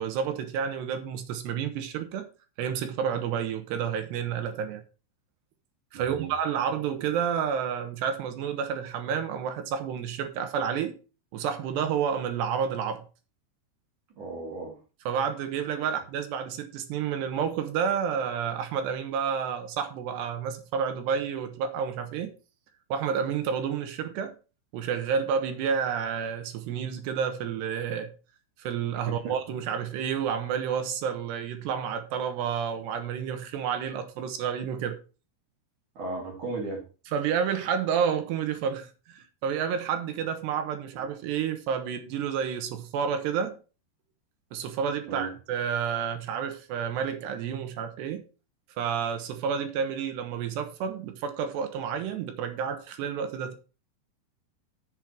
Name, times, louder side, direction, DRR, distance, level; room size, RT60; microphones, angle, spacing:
voice 1, 0.0-2.3 2.6-4.8 5.9-11.0 11.3-13.0 15.1-22.3 22.9-24.3 24.7-28.1 28.6-35.0 37.1-43.6 44.5-48.2 48.8-53.5, right 7 dB, 75° right, 3.2 m, -30 dB
voice 2, 5.9-6.3 14.2-14.8 15.9-16.0 29.1-29.4 36.0-36.8 40.9-41.1 45.1-45.3, right 3 dB, 50° right, 3.7 m, -36 dB
9.8 x 7.6 x 4.6 m
omnidirectional pair, 5.1 m